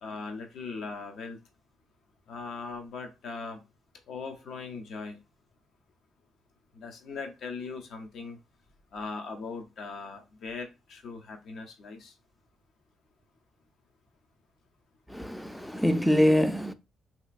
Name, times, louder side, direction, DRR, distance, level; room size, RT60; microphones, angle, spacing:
voice 1, 0.0-1.4 2.3-3.6 4.1-5.2 6.7-8.4 8.9-12.1, left 4 dB, 70° left, 0.7 m, -39 dB
voice 2, 15.1-16.7, equal, 5° left, 0.3 m, -24 dB
3.2 x 2.8 x 2.4 m
cardioid pair, 90°, 0 cm